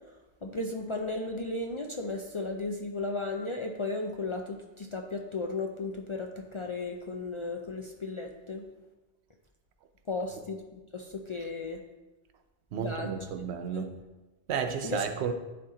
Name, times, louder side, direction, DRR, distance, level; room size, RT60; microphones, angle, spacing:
voice 1, 0.4-8.6 10.1-11.8 12.8-13.3 13.7-13.8 14.8-15.1, left 3 dB, 45° left, 0.4 m, -35 dB
voice 2, 12.7-13.9 14.5-15.3, right 7 dB, 90° right, 0.9 m, -32 dB
10.0 x 4.2 x 3.7 m
omnidirectional pair, 1.1 m